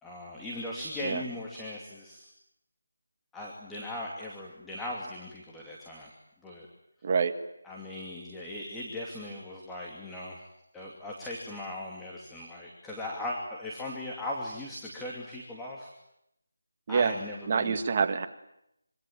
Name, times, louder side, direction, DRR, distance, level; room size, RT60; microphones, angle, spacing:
voice 1, 0.0-2.3 3.3-6.1 6.4-6.7 7.6-10.4 10.7-15.9 16.9-17.8, left 1 dB, 5° left, -3 dB, 2.7 m, -38 dB
voice 2, 7.0-7.3 16.9-17.1 17.5-18.3, right 5 dB, 35° right, 7 dB, 2.0 m, -26 dB
26.0 x 25.0 x 9.1 m, 0.81 s
figure-of-eight pair, 165°, 0 cm